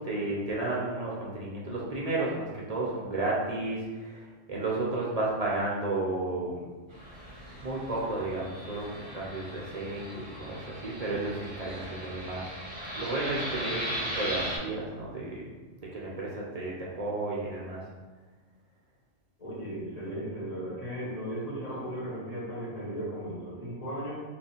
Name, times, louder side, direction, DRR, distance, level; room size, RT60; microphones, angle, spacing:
voice 1, 0.0-4.2 4.5-6.6 7.6-12.4 12.9-15.4 15.8-17.8, right 2 dB, 45° right, -5 dB, 0.6 m, -32 dB
Fixed-wing aircraft airplane, 6.9-14.6, equal, 25° right, 0.9 m, -38 dB
voice 2, 19.4-24.2, equal, 35° left, -8 dB, 1.4 m, -36 dB
3.0 x 2.6 x 4.2 m, 1.3 s
omnidirectional pair, 1.2 m